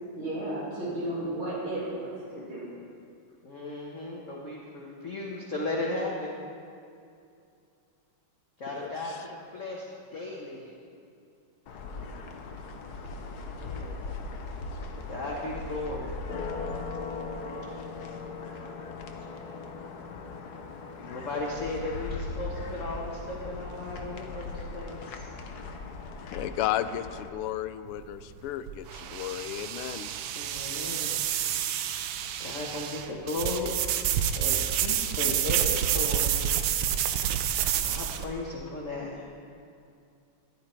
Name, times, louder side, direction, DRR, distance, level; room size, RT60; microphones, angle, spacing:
voice 1, 0.2-2.7, right 1 dB, 65° right, -8 dB, 3.3 m, -33 dB
voice 2, 3.4-6.4 8.6-9.9 10.1-10.7 13.3-14.0 14.7-16.1 21.0-25.3 30.3-31.2 32.4-33.7 34.3-36.5 37.7-39.2, left 2 dB, 40° left, -3 dB, 1.3 m, -36 dB
voice 3, 8.7-9.2 26.3-30.1, left 12 dB, 90° left, 13 dB, 1.5 m, -33 dB
sound 1, 11.7-27.3, left 3 dB, 55° left, 1.2 m, -39 dB
sound 2, 27.9-38.3, right 10 dB, 85° right, 1.6 m, -29 dB
14.5 x 11.5 x 4.4 m, 2.5 s
omnidirectional pair, 2.4 m